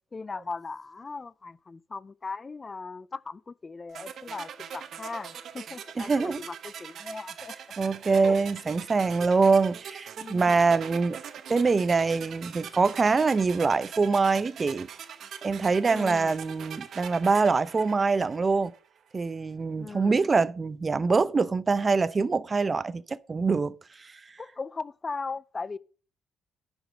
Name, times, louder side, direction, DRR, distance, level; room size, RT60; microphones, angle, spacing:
voice 1, 0.1-7.6 8.1-8.7 10.2-10.6 15.9-16.3 19.8-20.2 24.4-25.8, left 4 dB, 30° left, 0.5 m, -38 dB
sound 1, 3.9-18.9, right 8 dB, 65° right, 1.0 m, -42 dB
voice 2, 6.0-6.4 7.8-11.2 11.5-14.9 15.4-18.7 19.1-24.2, right 4 dB, 30° right, 0.6 m, -24 dB
11.0 x 5.3 x 5.2 m
cardioid pair, 90°, 0 cm